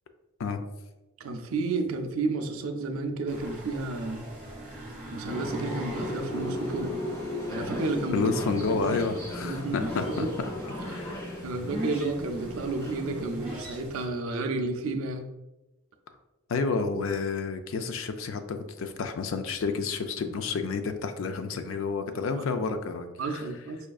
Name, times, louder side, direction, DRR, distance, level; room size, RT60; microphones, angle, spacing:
voice 1, 1.2-4.2 5.1-7.0 7.5-8.2 8.5-9.0 9.4-9.8 10.0-10.3 10.8-11.1 11.4-15.2 22.3-22.4 23.2-23.8, right 3 dB, 70° right, 5 dB, 0.4 m, -31 dB
sound 1, 3.3-14.0, right 1 dB, 5° right, 1.1 m, -41 dB
sound 2, 5.3-13.2, left 1 dB, 15° left, 0.6 m, -36 dB
voice 2, 8.1-10.3 10.8-11.4 16.5-23.4, left 4 dB, 65° left, 8 dB, 0.3 m, -30 dB
4.8 x 2.4 x 2.3 m, 1.0 s
head